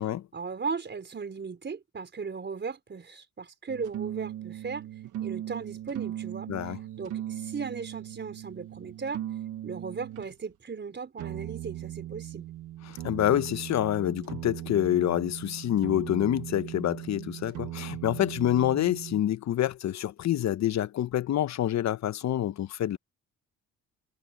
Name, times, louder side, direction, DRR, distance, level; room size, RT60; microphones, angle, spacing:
voice 1, 0.3-4.9 5.2-6.5 7.0-9.2 9.6-12.5, right 5 dB, 35° right, 5.0 m, -37 dB
sound 1, 3.7-10.3 11.2-19.2, right 12 dB, 80° right, 1.3 m, -38 dB
voice 2, 12.8-23.0, left 12 dB, 65° left, 1.0 m, -27 dB
cardioid pair, 90°, 30 cm